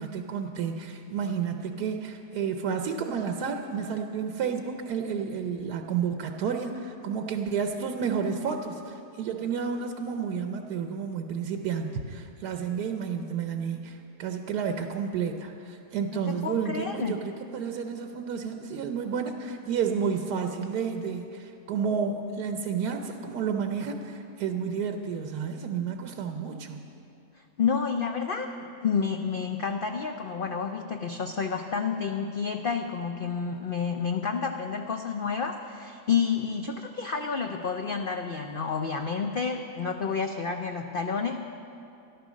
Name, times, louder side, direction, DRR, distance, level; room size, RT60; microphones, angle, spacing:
voice 1, 0.0-26.9, right 6 dB, 85° right, 5 dB, 1.3 m, -31 dB
voice 2, 16.1-17.2 27.6-41.4, left 6 dB, 80° left, 5 dB, 0.4 m, -30 dB
14.0 x 11.5 x 6.3 m, 2.7 s
omnidirectional pair, 1.7 m